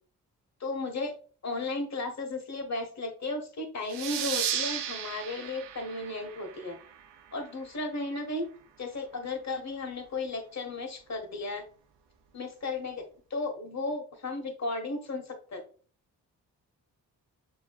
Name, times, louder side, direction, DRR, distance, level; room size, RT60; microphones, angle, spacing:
voice 1, 0.6-1.1 1.4-6.8 7.3-8.5 8.8-11.6 12.3-13.0 13.3-15.6, left 2 dB, 40° left, 4 dB, 1.4 m, -34 dB
sound 1, 3.9-7.1, right 9 dB, 80° right, 0.6 m, -34 dB
6.2 x 2.9 x 2.3 m, 0.42 s
supercardioid pair, 40°, 41 cm